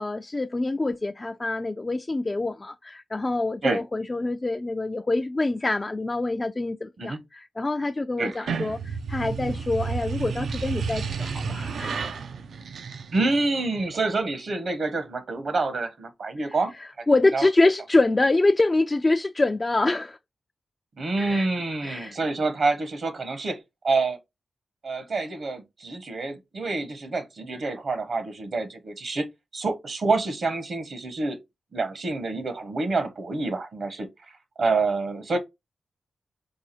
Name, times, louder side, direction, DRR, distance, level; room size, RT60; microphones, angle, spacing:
voice 1, 0.0-12.1 16.4-20.2 21.2-21.5 21.8-22.2, left 2 dB, 25° left, 0.3 m, -25 dB
sound 1, 8.2-13.5, right 5 dB, 85° right, 0.5 m, -31 dB
voice 2, 13.1-16.7 17.3-17.5 21.0-23.6 23.8-24.2 24.8-29.3 29.5-31.4 31.7-34.1 34.6-35.4, right 3 dB, 65° right, 1.0 m, -27 dB
4.7 x 2.4 x 4.2 m
wide cardioid pair, 90°, 0 cm